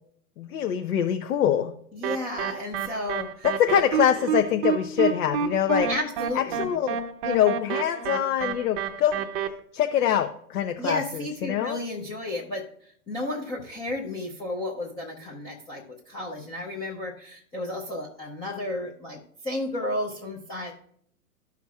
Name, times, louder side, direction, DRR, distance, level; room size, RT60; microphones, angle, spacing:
voice 1, 0.4-1.7 3.4-5.9 6.3-7.0 7.2-9.2 9.7-11.0 11.4-11.8, left 10 dB, 80° left, 6 dB, 0.7 m, -24 dB
voice 2, 1.9-3.5 5.9-6.7 10.8-12.6 13.1-20.7, left 1 dB, 10° left, -4 dB, 0.4 m, -33 dB
sound 1, 2.0-9.5, right 8 dB, 35° right, 0.6 m, -28 dB
13.0 x 5.9 x 2.3 m, 0.66 s
hypercardioid pair, 130°, 44 cm